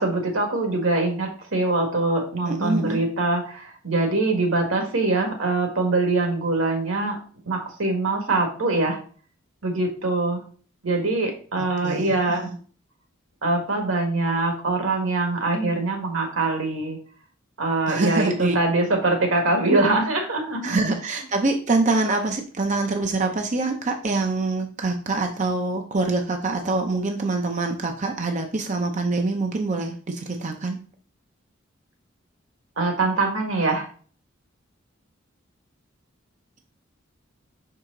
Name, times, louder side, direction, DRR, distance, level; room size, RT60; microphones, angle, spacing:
voice 1, 0.0-7.2 7.4-9.0 9.6-10.4 10.8-12.4 13.4-17.0 17.6-20.8 32.8-33.9, right 2 dB, 85° right, 3 dB, 1.6 m, -23 dB
voice 2, 2.5-3.0 11.6-12.5 17.9-18.6 20.6-30.8, right 3 dB, 35° right, 4 dB, 0.6 m, -25 dB
5.5 x 4.7 x 3.7 m, 0.41 s
head